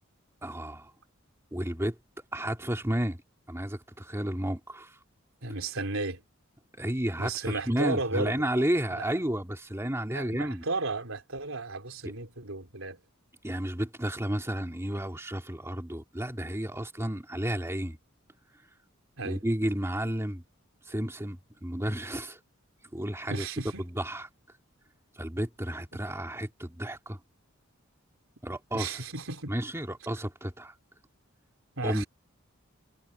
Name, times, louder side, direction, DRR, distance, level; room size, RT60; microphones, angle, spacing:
voice 1, 0.4-0.9 1.5-2.0 2.3-3.2 3.5-5.0 6.8-10.6 13.4-18.0 19.2-20.4 20.9-22.4 22.9-23.5 23.8-24.3 25.2-27.2 28.4-29.0 29.5-30.7 31.8-32.0, right 1 dB, 15° right, 2.6 m, -32 dB
voice 2, 5.4-6.2 7.2-8.6 8.9-9.0 10.1-13.0 19.2-19.4 23.3-23.9 28.7-29.6 31.8-32.1, right 3 dB, 75° right, 3.9 m, -34 dB
head